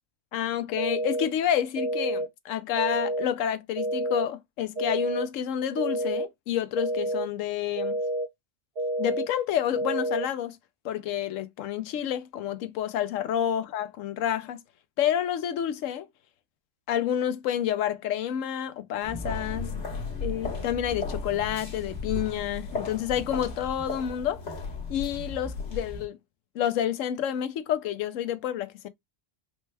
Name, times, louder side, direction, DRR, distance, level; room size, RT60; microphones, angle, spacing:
voice 1, 0.3-8.0 9.0-10.6 10.8-14.6 15.0-16.1 16.9-19.7 20.2-24.4 24.9-26.2 26.5-28.9, left 10 dB, 80° left, 1.0 m, -29 dB
sound 1, 0.8-1.3 1.8-2.3 2.8-3.3 3.8-4.3 4.8-5.3 5.8-6.3 6.8-7.3 7.8-8.3 8.8-9.3 9.8-10.3, right 1 dB, 60° right, 1.1 m, -29 dB
sound 2, 19.0-26.0, left 3 dB, 65° left, 1.5 m, -35 dB
4.3 x 2.1 x 3.2 m
omnidirectional pair, 1.3 m